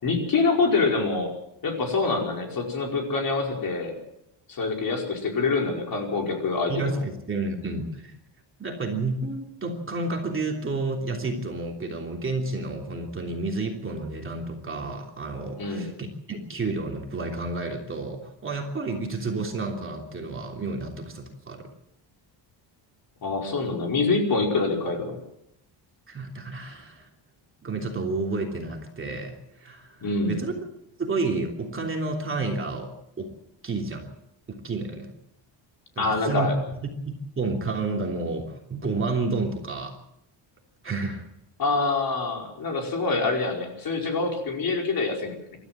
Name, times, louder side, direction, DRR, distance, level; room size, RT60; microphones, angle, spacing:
voice 1, 0.0-1.3 1.6-3.9 4.5-7.0 15.6-15.9 23.2-25.2 30.0-30.4 36.0-36.6 41.6-45.3, left 3 dB, 45° left, 1 dB, 5.2 m, -25 dB
voice 2, 6.7-8.1 8.6-21.7 26.1-27.1 27.6-30.6 31.0-33.3 33.6-34.1 34.5-35.1 35.9-36.5 37.1-40.0 40.8-41.3, right 3 dB, 25° right, 1 dB, 3.1 m, -30 dB
26.0 x 13.5 x 7.6 m, 0.80 s
cardioid pair, 155°, 47 cm